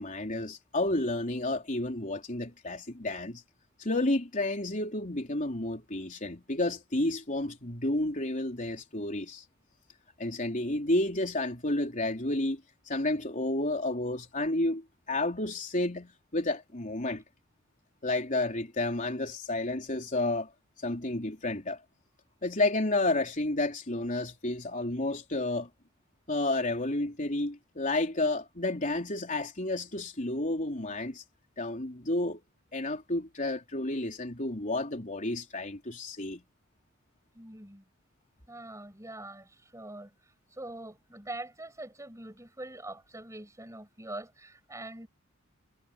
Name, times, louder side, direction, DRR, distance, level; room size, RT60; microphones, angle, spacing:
voice 1, 0.0-3.4 3.8-9.4 10.2-12.6 12.9-17.2 18.0-20.5 20.8-21.8 22.4-25.7 26.3-31.2 31.6-32.4 32.7-36.4, left 2 dB, 40° left, 3.8 m, -31 dB
voice 2, 37.3-37.9 38.5-40.1 40.5-45.1, right 2 dB, 15° right, 7.5 m, -43 dB
head